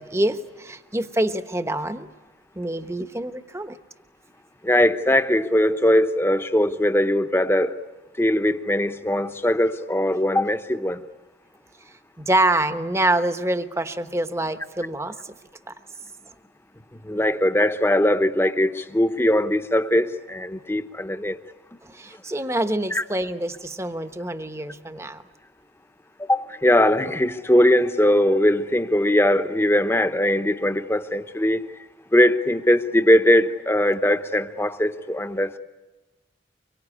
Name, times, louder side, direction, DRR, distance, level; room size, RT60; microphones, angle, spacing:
voice 1, 0.0-2.1 2.6-3.7 12.2-15.1 22.0-25.2, right 1 dB, 15° right, 1.0 m, -25 dB
voice 2, 4.6-7.7 8.2-11.0 16.9-21.4 22.9-23.0 26.3-31.7 32.1-35.5, left 1 dB, 15° left, 1.0 m, -20 dB
25.0 x 23.5 x 9.8 m
head